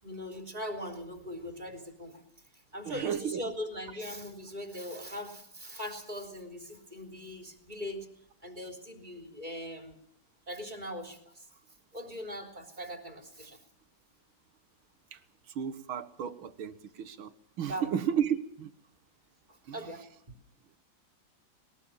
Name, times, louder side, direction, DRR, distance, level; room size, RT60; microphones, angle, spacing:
voice 1, 0.0-2.2 2.7-8.1 8.4-9.9 10.5-11.6 11.9-13.6 17.6-18.0 19.5-20.0, equal, 20° right, 3 dB, 3.6 m, -40 dB
voice 2, 2.9-3.4 15.1-15.2 15.6-17.3 17.6-18.7 19.7-19.8, right 8 dB, 90° right, 12 dB, 2.2 m, -33 dB
21.5 x 19.5 x 7.3 m, 0.64 s
omnidirectional pair, 2.2 m